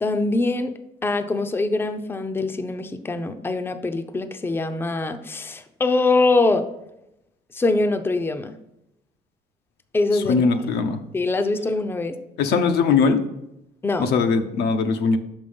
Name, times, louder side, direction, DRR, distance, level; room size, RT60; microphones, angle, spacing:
voice 1, 0.0-0.7 1.0-6.6 7.5-8.5 9.9-10.5 11.1-12.1 13.8-14.1, left 3 dB, 15° left, 8 dB, 0.5 m, -23 dB
voice 2, 10.3-11.0 12.4-13.2 14.0-15.2, left 5 dB, 75° left, 7 dB, 0.8 m, -20 dB
6.2 x 5.3 x 5.2 m, 0.85 s
cardioid pair, 110°, 17 cm